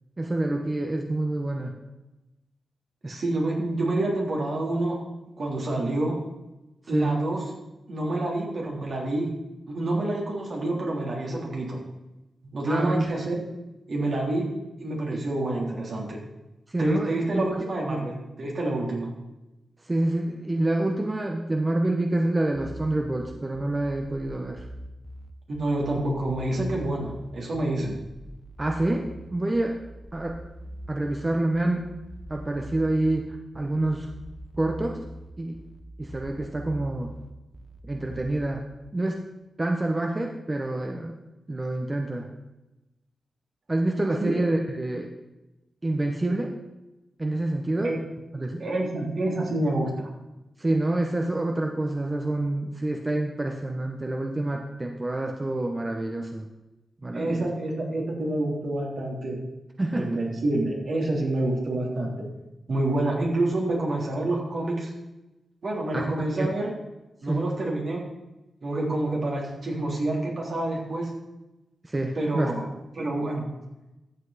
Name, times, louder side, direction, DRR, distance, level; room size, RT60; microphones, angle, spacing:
voice 1, 0.2-1.7 3.0-3.2 6.9-7.2 12.7-13.0 15.1-15.2 16.7-17.6 17.9-18.1 19.8-24.7 28.6-29.8 30.1-30.4 30.9-31.9 32.3-34.1 34.6-35.0 35.4-35.6 36.0-37.1 37.8-38.6 38.9-39.3 39.6-41.2 41.5-42.3 43.7-45.1 45.8-46.6 47.2-47.9 48.3-48.6 50.6-56.5 57.0-57.5 59.8-60.1 65.9-66.0 66.4-66.5 67.3-67.5 71.8-72.5, right 2 dB, 30° right, 3 dB, 1.1 m, -27 dB
voice 2, 3.1-5.0 5.4-6.2 6.9-7.4 7.9-9.3 9.7-11.8 12.5-13.4 13.9-14.5 14.8-16.2 16.8-19.1 25.5-28.0 44.2-44.4 47.8-48.0 48.6-50.1 57.1-59.4 59.9-62.3 62.7-64.9 65.6-66.7 67.2-68.0 68.6-71.1 72.1-72.7 72.9-73.4, right 2 dB, 65° right, -2 dB, 3.3 m, -27 dB
sound 1, 22.5-38.5, equal, 5° right, 1.3 m, -43 dB
13.5 x 7.8 x 4.2 m, 1.0 s
cardioid pair, 55°, 0 cm